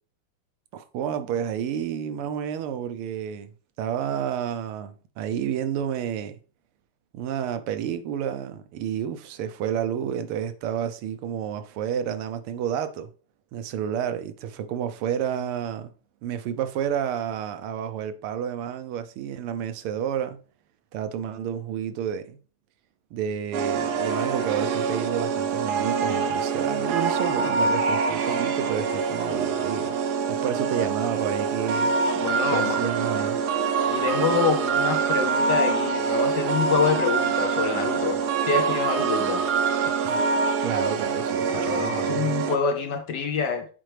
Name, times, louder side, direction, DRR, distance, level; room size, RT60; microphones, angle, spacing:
voice 1, 0.7-3.5 3.8-6.4 7.1-13.1 13.5-15.9 16.2-20.4 20.9-22.4 23.1-30.0 30.3-31.9 32.5-33.4 40.0-40.2 40.6-42.3, right 9 dB, 85° right, 1.6 m, -30 dB
sound 1, 23.5-42.6, right 5 dB, 65° right, 1.0 m, -25 dB
voice 2, 32.2-32.8 33.9-39.5 41.5-43.7, left 6 dB, 70° left, 1.0 m, -26 dB
7.9 x 4.3 x 3.2 m
omnidirectional pair, 2.4 m